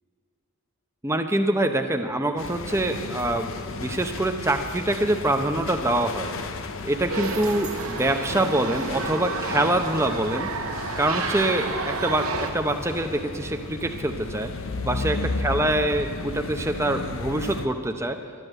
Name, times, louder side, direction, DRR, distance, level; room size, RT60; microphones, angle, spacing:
voice 1, 1.0-6.3 6.8-10.5 11.0-14.5 14.8-18.2, right 1 dB, 10° right, 5 dB, 0.7 m, -25 dB
sound 1, 2.4-17.7, left 3 dB, 60° left, 0.8 m, -34 dB
sound 2, 7.1-12.5, right 3 dB, 75° right, 1.3 m, -31 dB
12.0 x 11.0 x 8.0 m, 2.5 s
head